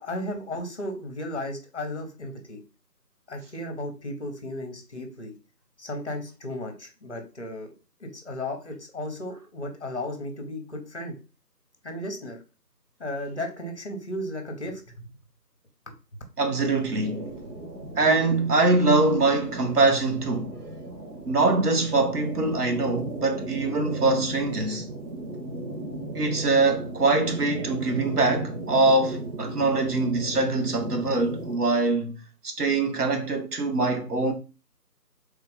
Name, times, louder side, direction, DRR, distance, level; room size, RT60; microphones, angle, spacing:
voice 1, 0.0-2.6 3.3-5.3 5.8-7.7 8.0-11.2 11.8-12.4 13.0-15.1 15.9-16.0, left 1 dB, 45° left, 0.8 m, -35 dB
voice 2, 16.4-17.3 18.0-20.6 21.3-24.9 26.1-32.2 32.4-34.3, right 3 dB, 65° right, 0.9 m, -23 dB
sound 1, 16.7-31.6, right 1 dB, 85° right, 1.2 m, -36 dB
3.3 x 2.4 x 3.4 m
figure-of-eight pair, 160°, 50 cm